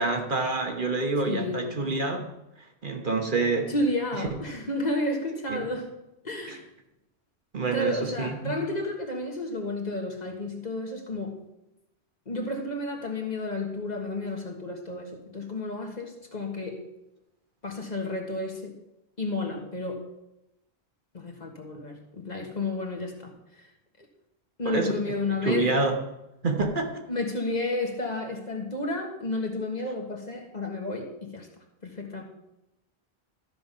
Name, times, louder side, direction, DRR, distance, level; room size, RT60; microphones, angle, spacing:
voice 1, 0.0-2.2 2.8-3.7 4.2-4.3 5.5-5.6 6.5-6.6 7.5-8.6 24.6-25.0 25.2-26.0 26.4-27.0, right 3 dB, 50° right, 3 dB, 1.3 m, -27 dB
voice 2, 1.3-1.8 3.7-5.9 6.2-6.7 7.7-11.4 12.3-16.9 17.6-18.7 19.2-20.1 21.1-23.3 24.6-25.8 27.1-31.5 31.8-32.2, left 2 dB, 40° left, 2 dB, 1.5 m, -31 dB
13.0 x 5.6 x 5.5 m, 0.91 s
omnidirectional pair, 1.1 m